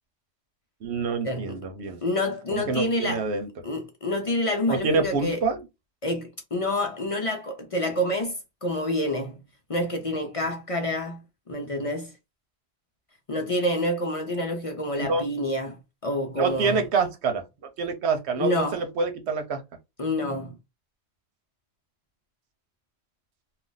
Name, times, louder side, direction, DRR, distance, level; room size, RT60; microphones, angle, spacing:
voice 1, 0.8-2.0 2.5-3.5 4.7-5.6 15.0-15.2 16.4-17.4 17.8-19.6, right 4 dB, 90° right, 1.0 m, -26 dB
voice 2, 2.0-3.2 3.6-5.4 6.0-9.4 9.7-12.1 13.3-15.8 16.0-16.8 18.4-18.8 20.0-20.6, left 1 dB, 40° left, 0.5 m, -28 dB
2.5 x 2.3 x 3.7 m
omnidirectional pair, 1.1 m